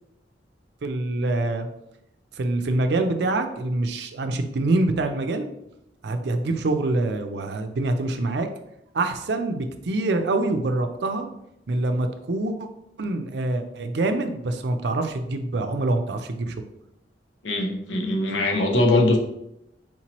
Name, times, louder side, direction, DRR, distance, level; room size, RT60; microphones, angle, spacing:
voice 1, 0.8-1.7 2.3-5.5 6.0-8.5 8.9-11.3 11.7-12.7 13.0-16.6, right 2 dB, 65° right, 7 dB, 0.5 m, -25 dB
voice 2, 17.4-19.2, left 2 dB, 90° left, 2 dB, 0.8 m, -21 dB
4.4 x 2.9 x 3.0 m, 0.81 s
head